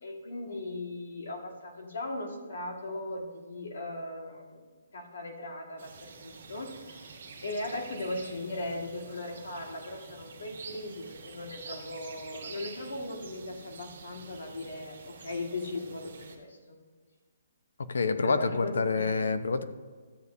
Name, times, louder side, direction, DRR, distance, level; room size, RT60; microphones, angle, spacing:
voice 1, 0.0-4.6 4.9-16.8 18.2-19.2, left 2 dB, 65° left, 3 dB, 1.8 m, -38 dB
sound 1, 5.8-16.4, right 5 dB, 45° right, 1.6 m, -48 dB
voice 2, 17.8-19.6, left 4 dB, 90° left, 11 dB, 0.7 m, -27 dB
13.5 x 8.0 x 2.7 m, 1.5 s
hypercardioid pair, 175°, 0 cm